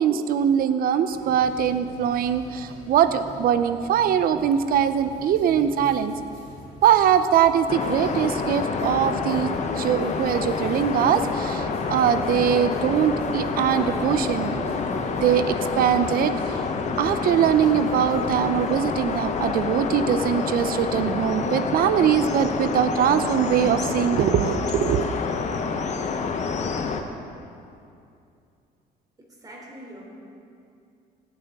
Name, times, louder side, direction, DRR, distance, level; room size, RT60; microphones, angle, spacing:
voice 1, 0.0-6.1 6.8-14.7 14.9-16.6 17.0-25.1, right 9 dB, 60° right, 11 dB, 0.6 m, -22 dB
sound 1, 1.1-19.6, right 1 dB, 85° right, 1.9 m, -44 dB
sound 2, 7.7-27.0, left 5 dB, 45° left, 0.9 m, -28 dB
voice 2, 29.2-30.0, right 1 dB, 20° right, -2 dB, 3.1 m, -43 dB
17.0 x 9.3 x 3.7 m, 2.6 s
cardioid pair, 110°, 17 cm